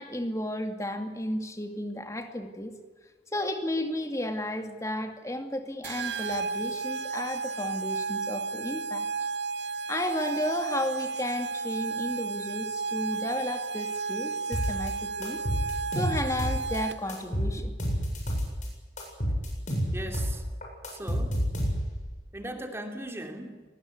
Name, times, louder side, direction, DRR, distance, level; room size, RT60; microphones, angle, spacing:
voice 1, 0.0-2.8 3.3-9.1 9.9-15.4 15.9-17.7, left 1 dB, 20° left, 6 dB, 2.5 m, -33 dB
sound 1, 5.8-17.2, right 4 dB, 85° right, 1.1 m, -33 dB
sound 2, 14.5-14.9 15.2-16.8 17.1-18.7 19.0-22.1, equal, 45° left, 7.7 m, -29 dB
voice 2, 19.9-20.4 20.9-21.4 22.3-23.6, right 1 dB, 15° right, 4 dB, 2.7 m, -38 dB
24.5 x 20.0 x 8.4 m, 1.3 s
head